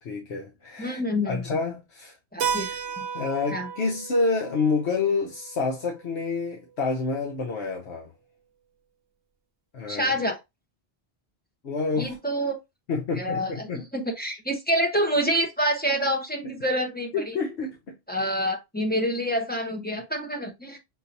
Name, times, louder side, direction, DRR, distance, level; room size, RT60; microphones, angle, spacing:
voice 1, 0.0-1.0 1.3-2.2 2.4-2.7 3.1-8.1 9.7-10.1 11.6-12.1 12.9-13.8 16.4-16.5 17.1-17.9, left 4 dB, 80° left, 1.1 m, -28 dB
voice 2, 0.8-1.4 2.3-2.7 3.0-3.1 3.5-3.7 9.9-10.4 12.0-12.6 13.2-17.4 18.1-20.8, equal, 10° left, 0.8 m, -27 dB
Keyboard (musical), 2.4-6.9, right 7 dB, 90° right, 0.9 m, -35 dB
6.0 x 2.8 x 2.6 m
omnidirectional pair, 1.1 m